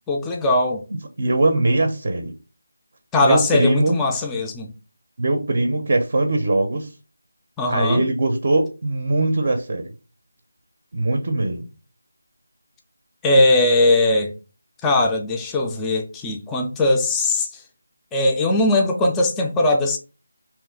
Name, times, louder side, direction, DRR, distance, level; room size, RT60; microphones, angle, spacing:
voice 1, 0.1-0.8 3.1-4.7 7.6-8.0 13.2-14.3 14.8-17.6 18.1-20.0, left 2 dB, 10° left, 0.3 m, -19 dB
voice 2, 1.2-2.3 3.2-4.0 5.2-6.9 7.7-9.9 10.9-11.7, right 2 dB, 45° right, 0.5 m, -21 dB
2.9 x 2.4 x 3.4 m
figure-of-eight pair, 165°, 0 cm